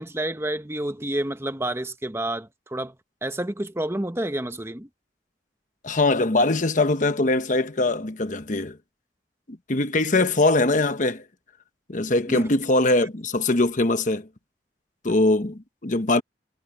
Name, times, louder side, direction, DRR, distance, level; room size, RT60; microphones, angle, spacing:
voice 1, 0.0-2.9 3.2-4.9 12.3-12.4, right 1 dB, 15° right, 1.1 m, -29 dB
voice 2, 5.8-8.8 9.7-11.2 11.9-14.3 15.0-16.2, left 2 dB, 45° left, 1.1 m, -22 dB
head